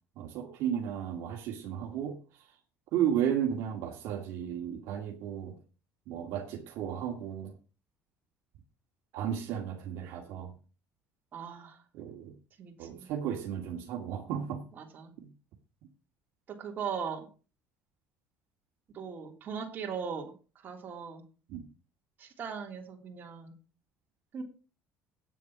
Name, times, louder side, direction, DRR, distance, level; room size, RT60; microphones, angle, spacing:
voice 1, 0.2-2.1 2.9-5.5 6.1-7.5 9.1-10.5 11.9-12.3 12.8-14.6 15.2-15.3 21.5-21.6, right 9 dB, 75° right, 2.2 m, -33 dB
voice 2, 11.3-11.8 12.6-13.1 14.7-15.1 16.5-17.3 18.9-20.3 20.6-21.2 22.2-23.5 24.3-24.4, right 6 dB, 40° right, 3.3 m, -39 dB
9.2 x 7.2 x 6.1 m
cardioid pair, 115°, 5 cm